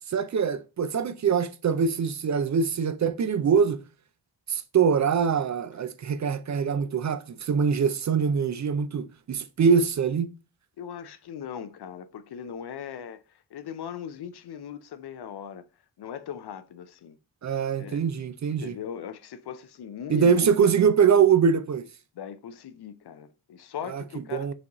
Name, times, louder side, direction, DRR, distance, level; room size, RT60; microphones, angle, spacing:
voice 1, 0.1-3.8 4.5-10.3 17.4-18.7 20.1-21.8 23.9-24.0 24.3-24.5, right 6 dB, 45° right, 0.4 m, -23 dB
voice 2, 10.8-15.7 16.0-17.2 17.8-18.0 18.5-20.5 22.1-24.5, left 8 dB, 65° left, 0.6 m, -39 dB
5.9 x 2.5 x 3.0 m
cardioid pair, 55°, 43 cm